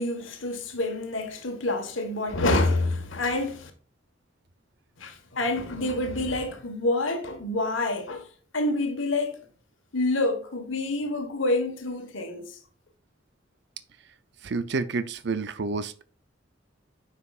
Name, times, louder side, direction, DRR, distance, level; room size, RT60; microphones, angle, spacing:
voice 1, 0.0-3.7 5.0-8.3 8.5-9.4 9.9-12.6, left 2 dB, 80° left, 1.4 m, -27 dB
voice 2, 14.4-16.0, right 4 dB, 60° right, 0.5 m, -29 dB
9.5 x 5.7 x 2.4 m
head